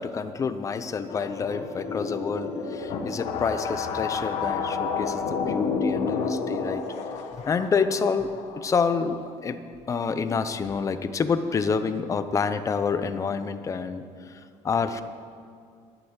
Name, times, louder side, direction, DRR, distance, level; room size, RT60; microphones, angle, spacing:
voice 1, 0.0-6.8 7.5-9.6 9.9-15.0, left 5 dB, 25° left, 11 dB, 0.7 m, -28 dB
sound 1, 1.1-9.4, left 5 dB, 65° left, 1.6 m, -30 dB
12.0 x 11.0 x 8.2 m, 2.2 s
cardioid pair, 140°, 12 cm